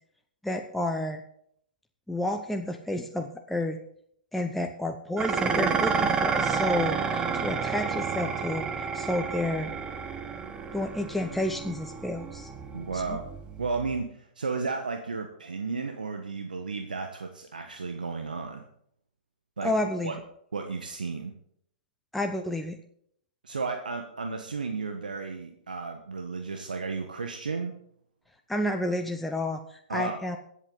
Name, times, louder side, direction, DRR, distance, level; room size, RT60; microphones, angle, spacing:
voice 1, 0.4-1.2 2.1-3.8 4.3-9.7 10.7-12.5 12.9-13.2 19.6-20.1 22.1-22.8 28.5-30.4, left 1 dB, 5° left, 3 dB, 0.8 m, -30 dB
Dishes pots and pans, 5.2-14.0, right 5 dB, 20° right, 1.0 m, -30 dB
voice 2, 12.7-13.3 13.6-18.6 19.6-19.7 20.0-20.1 20.5-21.3 23.4-27.7 29.9-30.2, right 4 dB, 75° right, 5 dB, 1.3 m, -33 dB
21.5 x 8.1 x 4.0 m, 0.67 s
figure-of-eight pair, 110°, 5 cm